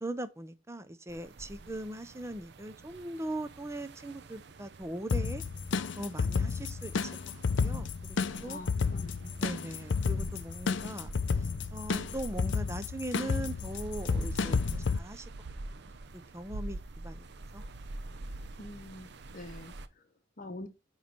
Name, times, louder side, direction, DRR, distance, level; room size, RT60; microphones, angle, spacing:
voice 1, 0.0-5.4 6.0-8.6 9.4-11.1 11.7-15.3 15.7-17.3 17.5-17.6, right 1 dB, 15° right, 0.5 m, -40 dB
sound 1, 1.1-19.9, right 2 dB, 55° right, 0.6 m, -46 dB
sound 2, 5.1-15.0, left 5 dB, 60° left, 0.5 m, -31 dB
voice 2, 8.4-9.4 18.6-20.7, left 2 dB, 40° left, 0.9 m, -46 dB
9.3 x 3.2 x 5.0 m
head